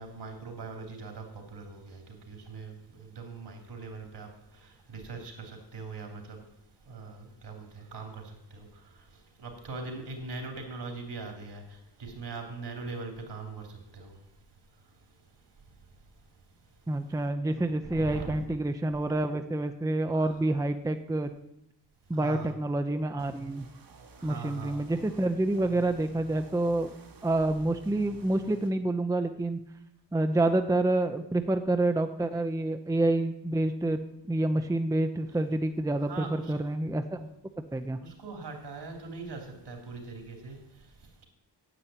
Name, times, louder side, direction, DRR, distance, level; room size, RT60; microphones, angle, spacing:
voice 1, 0.0-17.1 17.5-18.5 20.1-20.4 22.0-22.6 24.2-25.2 36.0-36.5 38.0-41.3, right 4 dB, 70° right, 3 dB, 3.1 m, -42 dB
voice 2, 16.9-21.3 22.1-23.6 24.2-26.9 27.2-29.6 30.1-34.0 34.3-37.3 37.7-38.0, right 2 dB, 10° right, 7 dB, 0.6 m, -28 dB
sound 1, 23.2-28.7, right 3 dB, 50° right, 1.4 m, -52 dB
10.0 x 8.2 x 9.0 m, 0.82 s
wide cardioid pair, 135°, 43 cm